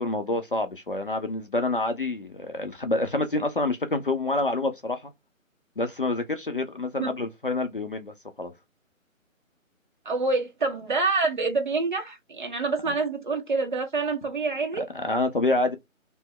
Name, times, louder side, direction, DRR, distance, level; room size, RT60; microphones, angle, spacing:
voice 1, 0.0-5.1 5.8-8.5 14.9-15.7, left 2 dB, 40° left, 0.6 m, -27 dB
voice 2, 10.0-14.9, right 3 dB, 35° right, 1.1 m, -27 dB
3.4 x 3.0 x 4.5 m
hypercardioid pair, 170°, 41 cm